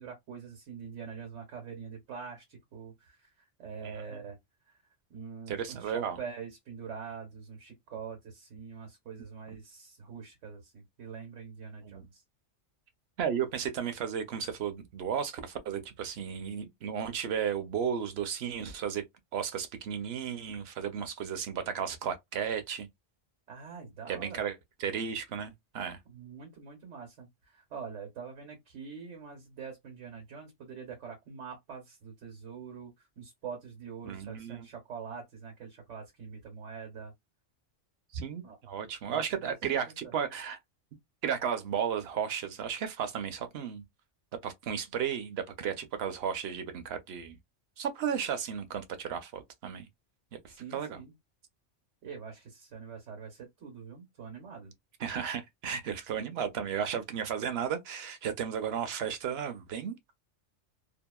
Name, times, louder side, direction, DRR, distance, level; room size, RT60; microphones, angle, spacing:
voice 1, 0.0-3.3 3.6-4.4 4.7-4.8 5.1-12.2 23.5-24.4 26.1-37.1 38.4-38.6 39.0-39.5 39.9-40.1 50.5-51.1 52.0-54.7, right 6 dB, 80° right, 1.3 m, -44 dB
voice 2, 3.8-4.2 5.5-6.2 11.8-12.1 13.2-19.0 19.3-22.9 24.1-24.5 24.8-26.0 34.0-34.7 38.1-40.6 41.2-43.8 44.4-47.4 47.8-49.9 50.4-51.0 55.0-60.0, right 8 dB, 65° right, 0.8 m, -34 dB
2.7 x 2.4 x 2.2 m
omnidirectional pair, 1.2 m